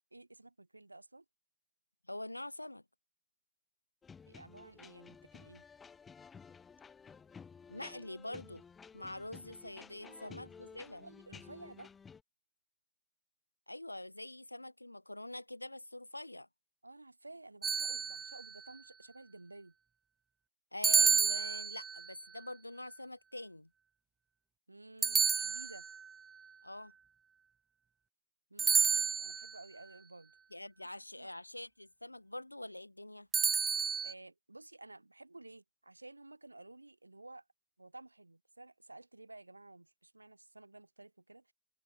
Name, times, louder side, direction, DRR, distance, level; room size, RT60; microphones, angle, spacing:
voice 1, 0.1-1.2 4.3-5.6 10.0-11.9 16.8-19.7 24.7-25.9 28.5-30.3 31.1-31.3 34.0-37.5 37.8-41.5, right 2 dB, 85° right, 4.1 m, -54 dB
voice 2, 2.1-2.8 7.7-8.6 8.9-11.1 13.7-16.5 20.7-23.7 26.6-26.9 30.5-33.3, left 1 dB, 85° left, 1.4 m, -45 dB
sound 1, 4.0-12.2, left 6 dB, 15° left, 4.5 m, -54 dB
sound 2, 17.6-18.5 20.8-22.1 25.0-26.1 28.6-29.6 33.3-34.1, right 6 dB, 20° right, 0.4 m, -30 dB
figure-of-eight pair, 90°, 0 cm